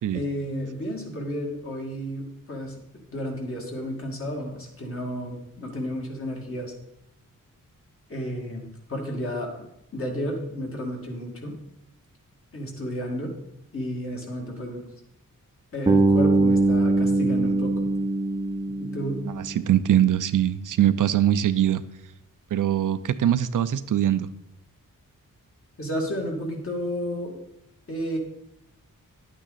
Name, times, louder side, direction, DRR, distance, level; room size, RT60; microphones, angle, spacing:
voice 1, 0.1-2.7 3.1-6.7 8.1-9.7 9.9-11.5 12.5-13.3 13.7-14.9 15.7-17.9 18.6-19.2 25.8-27.4 27.9-28.2, equal, 40° left, 0 dB, 2.3 m, -32 dB
Bass guitar, 15.9-19.8, right 2 dB, 15° right, 0.6 m, -22 dB
voice 2, 19.3-21.8 22.5-24.3, right 11 dB, 70° right, 13 dB, 0.5 m, -22 dB
11.0 x 8.9 x 4.1 m, 0.80 s
wide cardioid pair, 170°, 33 cm